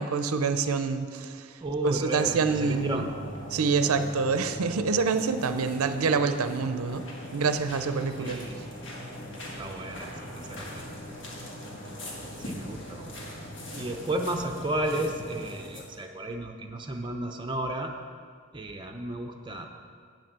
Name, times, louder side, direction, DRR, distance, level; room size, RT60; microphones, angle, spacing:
voice 1, 0.0-1.5 1.8-3.0 3.5-7.0 7.3-8.4, right 4 dB, 90° right, 9 dB, 0.6 m, -26 dB
voice 2, 1.6-3.1 8.2-8.6 9.6-10.9 12.4-13.3 13.7-17.9 18.5-19.7, right 1 dB, 20° right, 3 dB, 0.6 m, -33 dB
sound 1, 2.2-15.8, equal, 55° left, 1.9 m, -41 dB
8.8 x 6.2 x 7.3 m, 2.1 s
head